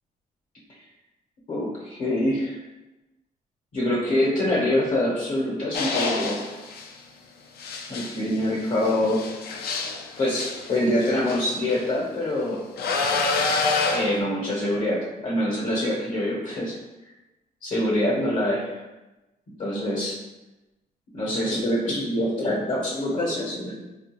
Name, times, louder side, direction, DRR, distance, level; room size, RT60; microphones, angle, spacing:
voice 1, 1.5-2.6 3.7-6.5 7.9-9.3 10.2-12.6 13.9-16.7 17.6-18.8 19.6-20.1 21.1-23.8, left 1 dB, 50° left, -6 dB, 0.8 m, -25 dB
sound 1, 5.7-6.9 7.6-11.9 12.8-14.2, left 3 dB, 80° left, 0.4 m, -27 dB
3.5 x 2.3 x 2.9 m, 1.1 s
cardioid pair, 140°, 16 cm